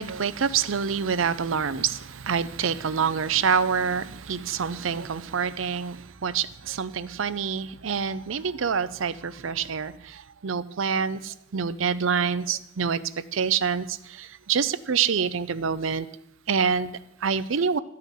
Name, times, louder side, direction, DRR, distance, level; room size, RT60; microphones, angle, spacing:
voice 1, 0.0-13.0 13.3-16.1 16.5-17.8, right 6 dB, 85° right, 0.6 m, -26 dB
12.5 x 5.7 x 9.1 m
head